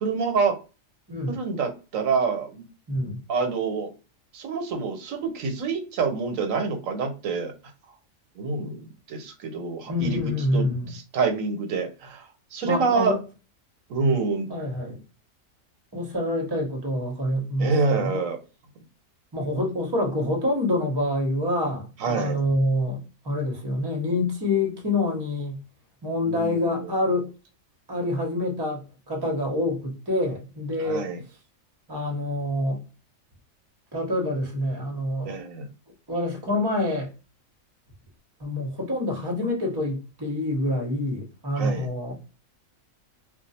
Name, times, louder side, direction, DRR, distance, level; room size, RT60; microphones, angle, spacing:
voice 1, 0.0-0.6 1.3-2.6 3.3-3.9 4.3-7.5 8.4-8.8 9.1-10.2 10.5-10.7 10.9-12.3 12.5-13.1 13.9-14.5 17.6-18.4 22.0-22.4 26.3-26.9 30.8-31.2 35.3-35.7 41.6-41.9, right 4 dB, 85° right, 1.1 m, -26 dB
voice 2, 2.9-3.2 9.9-10.9 12.6-13.2 14.5-15.0 15.9-18.3 19.3-25.6 26.0-27.3 27.9-31.1 31.9-32.8 33.9-35.4 36.1-37.1 38.4-42.2, left 1 dB, 20° right, 0.8 m, -27 dB
2.4 x 2.3 x 4.0 m
omnidirectional pair, 1.4 m